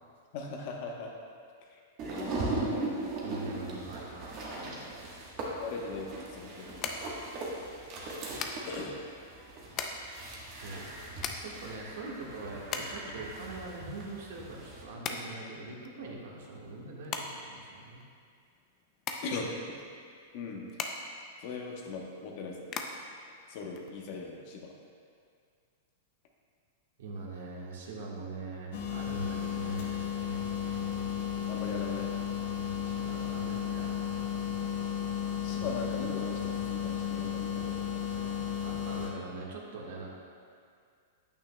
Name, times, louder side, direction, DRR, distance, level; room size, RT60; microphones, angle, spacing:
voice 1, 0.3-1.1 2.1-2.5 5.6-6.9 8.7-9.0 19.2-19.5 20.3-20.7 21.4-22.8 23.5-24.7 31.5-32.1 35.4-37.8 38.2-38.5, left 4 dB, 40° left, 0 dB, 0.9 m, -39 dB
sound 1, 2.0-14.8, right 2 dB, 30° right, 1.2 m, -39 dB
voice 2, 3.2-4.8 10.6-10.9 11.4-18.0 27.0-30.8 32.8-34.1 38.6-40.1, right 3 dB, 70° right, -2 dB, 1.5 m, -43 dB
sound 2, 6.8-24.4, left 5 dB, 25° left, 0.4 m, -42 dB
sound 3, 28.7-39.1, left 9 dB, 55° left, 1.1 m, -34 dB
8.9 x 8.7 x 2.2 m, 2.2 s
supercardioid pair, 170°, 0 cm